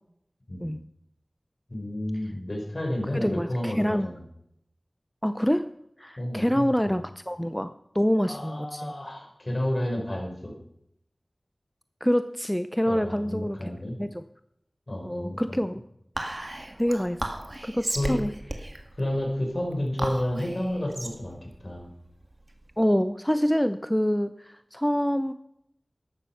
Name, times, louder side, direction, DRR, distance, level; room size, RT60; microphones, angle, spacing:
voice 1, 1.7-4.2 6.2-6.9 8.3-10.5 12.8-14.0 14.9-15.6 17.9-18.2 19.0-21.9, left 1 dB, 50° left, 1 dB, 5.1 m, -31 dB
voice 2, 3.1-4.1 5.2-5.7 6.0-8.9 12.0-13.7 14.0-14.2 15.0-15.8 16.8-17.2 17.6-18.3 22.8-25.3, equal, 5° left, 11 dB, 0.6 m, -26 dB
Whispering, 16.2-22.8, right 1 dB, 40° right, 2.0 m, -35 dB
13.5 x 11.5 x 5.8 m, 0.75 s
wide cardioid pair, 45°, 0 cm